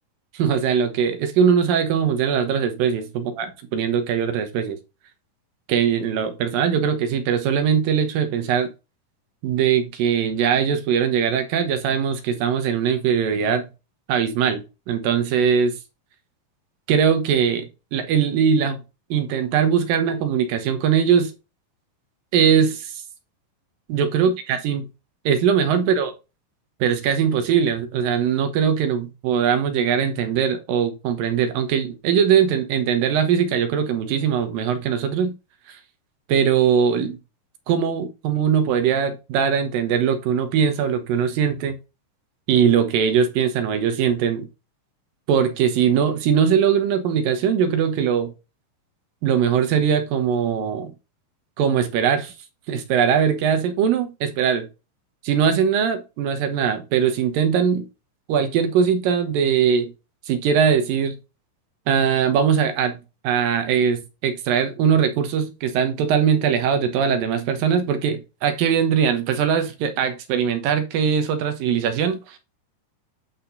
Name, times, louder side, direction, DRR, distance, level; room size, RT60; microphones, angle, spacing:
voice 1, 0.3-4.8 5.7-8.7 9.4-13.7 14.1-15.8 16.9-18.8 19.1-21.3 22.3-22.9 23.9-24.8 25.3-26.1 26.8-35.3 35.7-35.8 36.3-37.2 37.7-41.8 42.5-44.5 45.3-48.3 49.2-50.9 51.6-52.3 52.7-54.7 55.2-57.9 58.3-59.9 60.3-61.2 61.9-72.4, right 7 dB, 75° right, 2.7 m, -21 dB
9.3 x 4.4 x 4.0 m
omnidirectional pair, 4.2 m